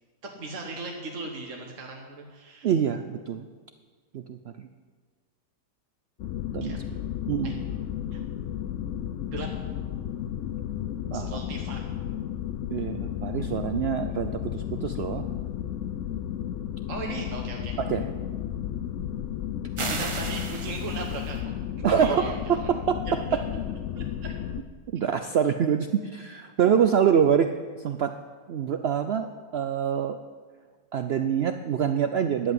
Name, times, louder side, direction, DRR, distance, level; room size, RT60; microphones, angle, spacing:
voice 1, 0.2-2.7 6.6-6.8 7.4-7.5 8.1-8.2 9.3-9.5 11.1-11.8 16.9-17.8 19.8-21.4 21.9-22.7 23.2-23.4 23.9-24.0, right 3 dB, 50° right, 0 dB, 1.6 m, -37 dB
voice 2, 2.6-3.5 4.1-4.5 6.5-7.0 7.3-7.5 11.1-11.4 12.7-15.3 17.8-18.1 21.8-23.4 24.9-27.5 27.8-28.1 28.5-30.2 30.9-32.5, right 8 dB, 90° right, 8 dB, 0.5 m, -25 dB
sound 1, 6.2-24.6, left 10 dB, 65° left, 0.8 m, -33 dB
sound 2, 19.8-21.4, right 3 dB, 35° right, 0.5 m, -34 dB
11.0 x 8.0 x 9.3 m, 1.5 s
omnidirectional pair, 1.7 m